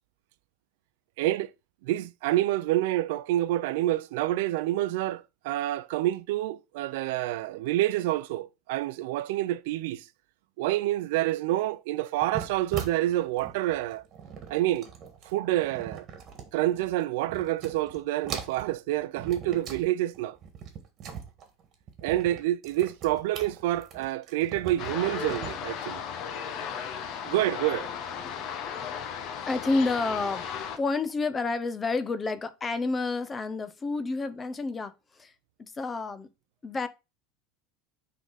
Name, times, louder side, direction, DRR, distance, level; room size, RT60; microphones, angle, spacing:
voice 1, 1.2-1.5 1.8-10.1 10.6-14.0 14.5-14.9 15.2-16.1 16.5-20.4 22.0-26.0 26.6-26.7 27.2-27.9, right 15 dB, 75° right, 0.5 m, -28 dB
sound 1, 12.2-16.9 17.2-18.0 18.2-19.9 20.1-25.5, right 7 dB, 30° right, 1.6 m, -41 dB
sound 2, 24.8-30.8, left 7 dB, 40° left, 0.9 m, -35 dB
voice 2, 29.5-30.5 30.8-35.3 35.6-36.3 36.6-36.9, left 3 dB, 15° left, 0.6 m, -29 dB
9.1 x 3.9 x 4.0 m
cardioid pair, 165°, 0 cm